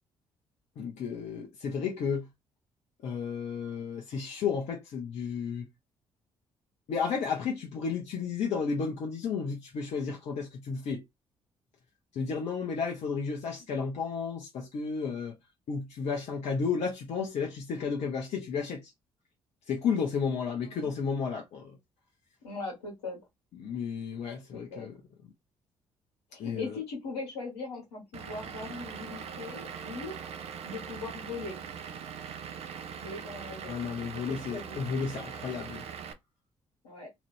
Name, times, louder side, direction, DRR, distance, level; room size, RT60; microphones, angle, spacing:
voice 1, 0.8-2.3 3.0-5.7 6.9-11.0 12.1-15.3 15.7-18.8 19.7-21.8 23.6-25.0 26.4-26.7 33.7-35.8, left 5 dB, 60° left, 0.8 m, -32 dB
voice 2, 22.4-23.2 24.7-24.9 26.3-30.1 30.6-31.6 33.0-33.7 34.1-34.8 36.8-37.1, left 3 dB, 80° left, 1.3 m, -40 dB
Vehicle / Engine, 28.1-36.1, right 7 dB, 50° right, 0.6 m, -41 dB
2.9 x 2.4 x 3.2 m
hypercardioid pair, 45°, 13 cm